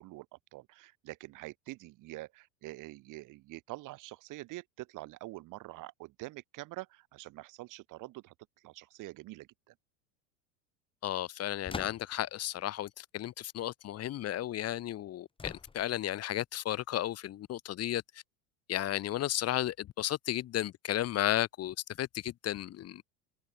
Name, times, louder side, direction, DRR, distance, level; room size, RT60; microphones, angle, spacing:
voice 1, 0.0-8.3 8.6-9.7, right 19 dB, 55° right, 7.5 m, -46 dB
voice 2, 11.0-18.0 18.7-23.0, left 13 dB, 40° left, 2.9 m, -34 dB
sound 1, 11.6-12.3 15.4-16.1, left 4 dB, 15° left, 2.0 m, -43 dB
supercardioid pair, 125°, 38 cm